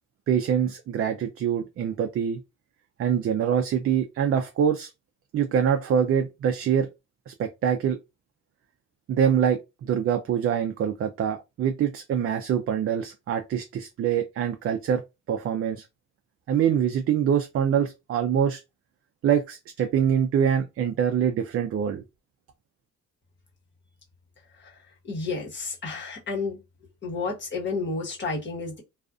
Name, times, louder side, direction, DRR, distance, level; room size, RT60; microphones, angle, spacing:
voice 1, 0.3-2.4 3.0-4.9 5.3-6.9 7.3-8.0 9.1-15.0 15.3-15.9 16.5-18.6 19.2-22.0, right 8 dB, 45° right, 0.4 m, -24 dB
voice 2, 25.0-26.6 27.0-28.8, left 3 dB, 35° left, 1.2 m, -31 dB
2.4 x 2.4 x 2.4 m
cardioid pair, 90°, 30 cm